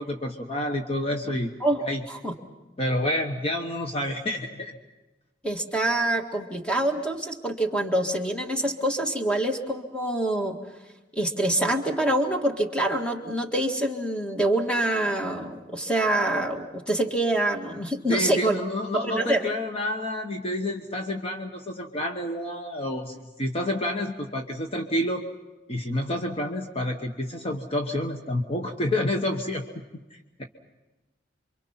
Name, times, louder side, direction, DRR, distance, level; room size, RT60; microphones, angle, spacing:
voice 1, 0.0-1.5 1.8-2.0 2.8-4.7 18.1-25.2 25.7-29.6 30.1-30.4, left 1 dB, 35° left, 3 dB, 1.2 m, -29 dB
voice 2, 1.6-2.3 5.4-10.6 11.1-18.6 18.9-19.5, right 1 dB, 5° left, 3 dB, 1.8 m, -26 dB
28.0 x 24.5 x 5.8 m, 1.1 s
head